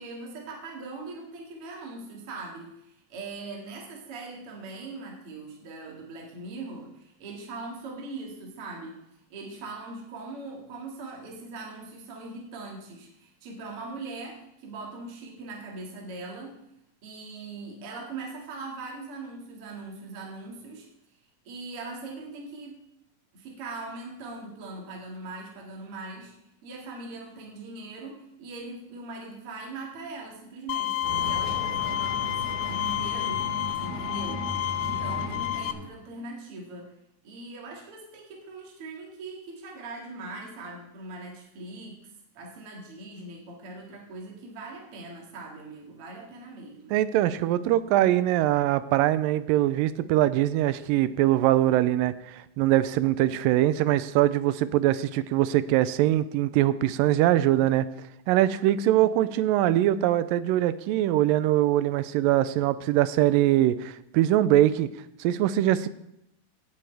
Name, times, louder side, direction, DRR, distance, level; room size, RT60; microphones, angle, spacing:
voice 1, 0.0-9.0 9.3-16.6 17.0-20.9 21.4-22.7 23.3-26.3 26.6-33.5 33.8-34.5 34.8-36.9 37.2-47.0, right 3 dB, 45° right, -1 dB, 2.8 m, -41 dB
Bowed string instrument, 30.7-35.7, left 13 dB, 80° left, 1.9 m, -30 dB
sound 1, 31.0-36.0, equal, 25° right, 4.0 m, -36 dB
voice 2, 46.9-57.9 58.3-64.9 65.2-65.9, right 13 dB, 80° right, 15 dB, 2.2 m, -22 dB
17.0 x 8.9 x 3.4 m, 0.82 s
omnidirectional pair, 4.1 m